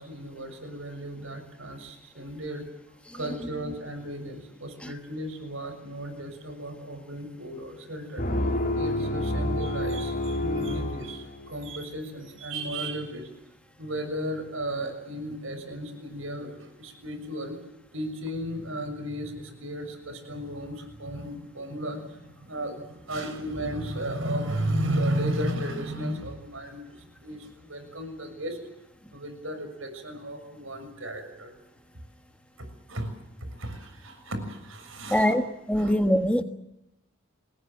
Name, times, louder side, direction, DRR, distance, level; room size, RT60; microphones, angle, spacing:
voice 1, 0.0-2.6 3.1-13.3 13.8-17.6 17.9-28.6 29.1-31.6 32.6-33.1 33.4-35.3 35.8-35.9, right 1 dB, 70° right, 8 dB, 6.7 m, -34 dB
sound 1, 8.2-11.8, left 1 dB, 40° left, 3.2 m, -29 dB
voice 2, 35.1-36.4, equal, 5° left, 7 dB, 1.4 m, -24 dB
28.0 x 20.0 x 7.6 m, 0.87 s
head